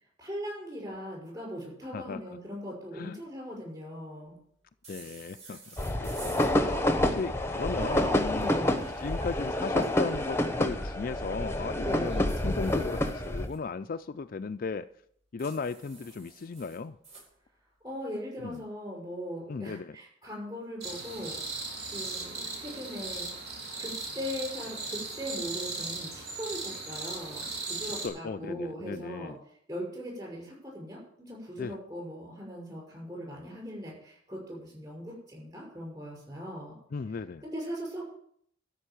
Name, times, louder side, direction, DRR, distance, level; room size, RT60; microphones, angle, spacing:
voice 1, 0.2-4.4 8.4-8.8 11.8-12.1 17.8-21.4 21.9-23.3 23.8-29.3 29.7-36.8 37.4-38.0, equal, 20° right, -2 dB, 5.9 m, -39 dB
sound 1, 4.8-6.5 8.5-9.9 12.0-13.6 15.4-17.3, right 3 dB, 35° right, 4.8 m, -51 dB
voice 2, 4.9-5.6 6.0-8.5 9.0-14.9 15.3-17.0 18.4-18.6 19.5-20.0 27.8-29.4 31.6-31.7 36.9-37.4, left 4 dB, 45° left, 10 dB, 0.4 m, -36 dB
sound 2, 5.8-13.5, left 1 dB, 15° left, 0.9 m, -28 dB
sound 3, 20.8-28.1, right 3 dB, 55° right, 3.3 m, -37 dB
13.0 x 5.4 x 9.0 m, 0.66 s
head